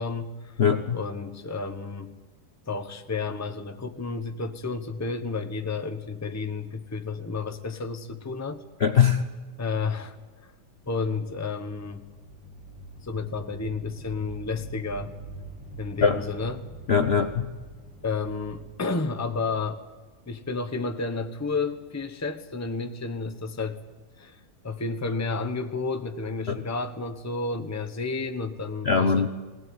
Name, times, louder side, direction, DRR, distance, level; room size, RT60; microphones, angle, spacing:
voice 1, 0.0-0.5 0.9-2.1 2.7-8.6 9.6-10.2 10.9-12.1 13.0-15.1 15.8-16.7 18.0-19.8 20.3-23.8 24.2-24.4 24.6-29.3, left 4 dB, 10° left, 7 dB, 0.9 m, -31 dB
voice 2, 0.6-1.0 8.8-9.2 16.0-16.2 16.9-17.5 26.5-26.6 28.9-29.3, left 6 dB, 45° left, 7 dB, 0.9 m, -21 dB
sound 1, 10.8-20.5, right 2 dB, 5° right, 2.3 m, -45 dB
21.0 x 17.5 x 9.6 m, 1.3 s
omnidirectional pair, 2.0 m